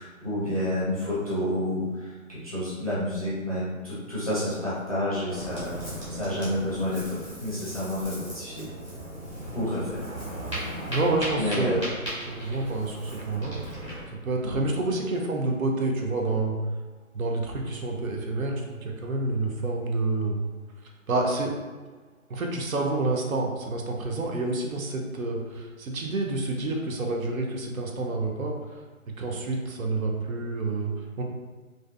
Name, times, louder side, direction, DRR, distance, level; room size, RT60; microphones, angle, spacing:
voice 1, 0.0-5.8 6.1-8.7 9.5-10.0 11.4-11.8 14.4-14.7, left 1 dB, 25° left, -10 dB, 0.5 m, -29 dB
Ocean, 5.3-14.0, equal, 20° right, 0.6 m, -37 dB
voice 2, 10.9-11.8 12.3-13.6 14.1-16.6 17.1-20.4 21.1-21.5 22.3-28.6 29.1-31.2, right 2 dB, 75° right, 1 dB, 0.6 m, -28 dB
2.6 x 2.3 x 2.3 m, 1.4 s
figure-of-eight pair, 165°, 42 cm